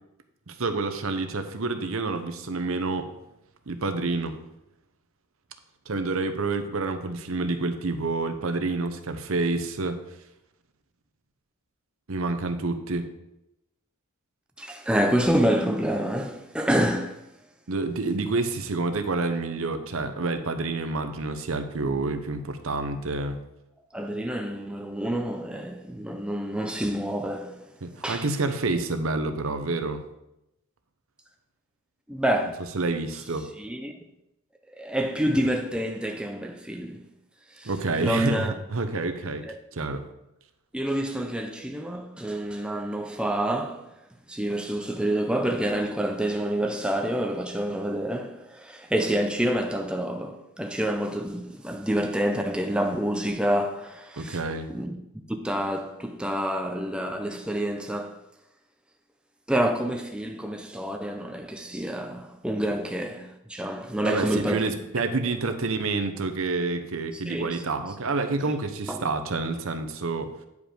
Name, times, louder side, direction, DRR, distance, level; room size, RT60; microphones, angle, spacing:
voice 1, 0.5-3.1 3.7-4.4 5.9-10.0 12.1-13.1 17.7-23.4 27.8-30.0 32.7-33.5 37.6-39.4 39.7-40.0 54.2-54.7 64.0-70.3, right 3 dB, 65° right, 0.8 m, -28 dB
voice 2, 14.6-17.2 23.9-27.6 28.0-28.3 32.1-32.6 33.6-33.9 34.7-37.1 37.5-37.7 38.0-38.5 39.5-39.6 40.7-43.9 44.3-54.4 54.7-55.0 55.3-58.2 59.5-64.7 67.1-67.6 68.4-68.5 68.9-69.0, right 1 dB, 5° right, 0.5 m, -28 dB
9.5 x 5.2 x 5.1 m
head